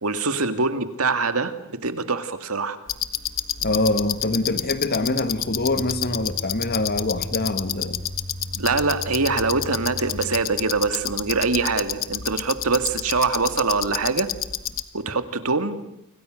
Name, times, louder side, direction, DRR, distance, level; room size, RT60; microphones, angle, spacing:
voice 1, 0.0-1.5 1.8-2.8 8.5-14.3 14.9-15.8, right 4 dB, 80° right, 2.2 m, -24 dB
sound 1, 2.9-14.8, left 11 dB, 65° left, 1.4 m, -30 dB
voice 2, 3.6-8.0, left 2 dB, 45° left, 1.6 m, -24 dB
sound 2, 5.5-10.4, equal, 45° right, 4.2 m, -37 dB
30.0 x 25.5 x 6.5 m
head